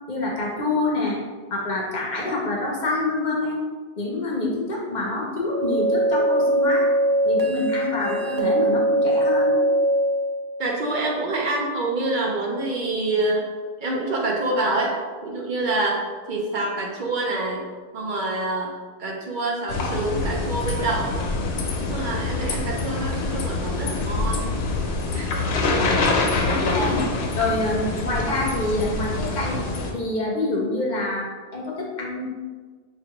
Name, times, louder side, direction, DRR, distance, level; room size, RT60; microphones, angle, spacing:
voice 1, 0.1-1.2 1.5-3.6 4.0-6.9 7.3-9.6 26.4-27.0 27.4-29.6 29.9-32.3, left 2 dB, 50° left, -2 dB, 0.7 m, -26 dB
sound 1, 5.4-10.4, right 1 dB, 35° right, 0.3 m, -21 dB
voice 2, 10.6-13.5 13.8-15.0 15.2-17.6 17.9-21.1 21.8-24.6 25.1-25.3, right 2 dB, 55° right, -2 dB, 0.7 m, -26 dB
sound 2, 19.7-29.9, left 3 dB, 90° left, 0.9 m, -25 dB
4.5 x 2.4 x 2.9 m, 1.5 s
omnidirectional pair, 1.1 m